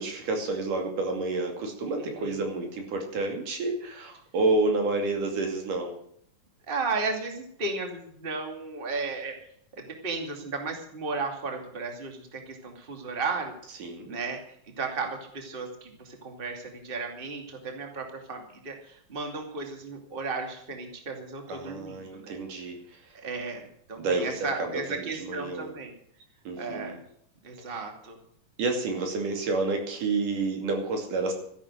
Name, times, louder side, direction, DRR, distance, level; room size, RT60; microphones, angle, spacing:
voice 1, 0.0-6.0 13.8-14.2 21.5-22.8 24.0-25.7 26.5-27.0 27.7-27.8 28.6-31.3, right 3 dB, 75° right, 3 dB, 4.2 m, -29 dB
voice 2, 2.0-2.4 6.7-9.4 9.8-14.4 14.8-22.4 23.1-25.9 26.6-27.0 27.4-28.2, right 4 dB, 20° right, 3 dB, 2.4 m, -34 dB
14.0 x 11.5 x 6.3 m, 0.67 s
omnidirectional pair, 3.8 m